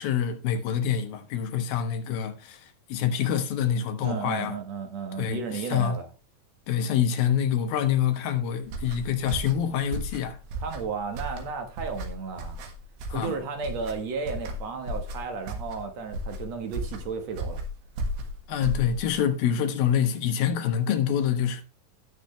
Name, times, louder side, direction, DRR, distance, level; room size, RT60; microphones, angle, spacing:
voice 1, 0.0-2.6 2.9-4.5 5.2-5.4 5.7-6.0 6.7-10.4 13.1-13.3 18.5-21.6, left 9 dB, 80° left, 3.0 m, -26 dB
voice 2, 4.0-6.1 10.6-12.6 13.1-17.6, right 5 dB, 60° right, 2.0 m, -33 dB
sound 1, 8.6-19.3, right 1 dB, 85° right, 3.5 m, -35 dB
17.0 x 6.2 x 3.1 m
omnidirectional pair, 4.2 m